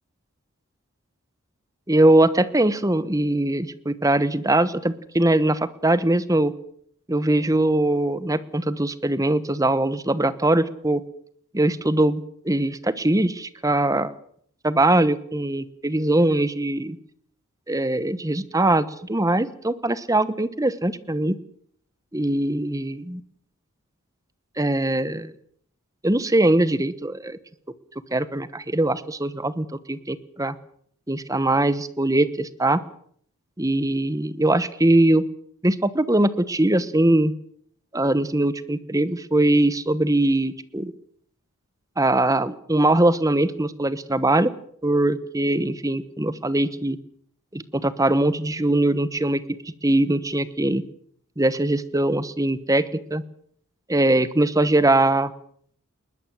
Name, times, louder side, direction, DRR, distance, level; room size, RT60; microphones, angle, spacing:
voice 1, 1.9-6.5 7.1-11.0 11.5-14.1 14.6-17.0 17.7-21.4 22.1-23.2 24.6-25.3 26.0-27.4 28.1-30.6 31.1-32.8 33.6-35.2 35.6-37.3 37.9-40.9 42.0-44.5 44.8-47.0 47.5-49.4 49.8-50.8 51.4-53.2 53.9-55.3, right 1 dB, 15° right, 15 dB, 1.1 m, -21 dB
20.5 x 20.0 x 7.7 m, 0.63 s
head